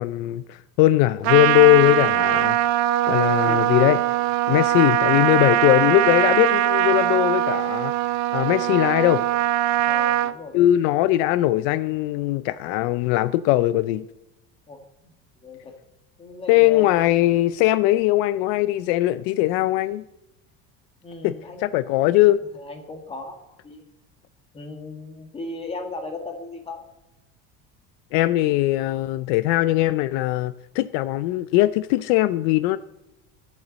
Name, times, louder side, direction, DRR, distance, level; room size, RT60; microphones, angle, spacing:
voice 1, 0.0-2.6 3.1-4.0 4.5-7.9 8.3-9.2 10.5-14.1 16.5-20.0 21.2-22.4 28.1-32.8, left 16 dB, 70° left, 0.6 m, -20 dB
Trumpet, 1.2-10.3, right 13 dB, 55° right, 0.7 m, -21 dB
voice 2, 9.8-10.7 14.7-14.8 15.4-15.7 16.2-16.9 21.0-21.7 22.5-23.4 23.6-23.8 24.5-26.8, left 3 dB, 15° left, 1.9 m, -36 dB
23.5 x 8.4 x 4.0 m
cardioid pair, 165°, 34 cm